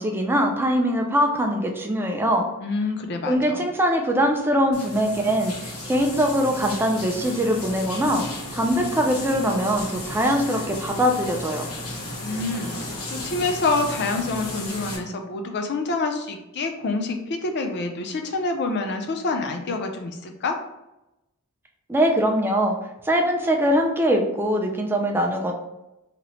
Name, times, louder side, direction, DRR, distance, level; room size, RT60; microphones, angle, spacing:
voice 1, 0.0-2.4 3.3-8.2 8.5-11.7 21.9-22.8 23.0-25.5, equal, 10° right, 2 dB, 0.4 m, -22 dB
voice 2, 2.6-3.6 12.2-20.6, left 3 dB, 50° left, 4 dB, 0.5 m, -27 dB
sound 1, 4.7-15.0, left 1 dB, 80° left, 0.9 m, -34 dB
2.9 x 2.1 x 4.0 m, 0.92 s
head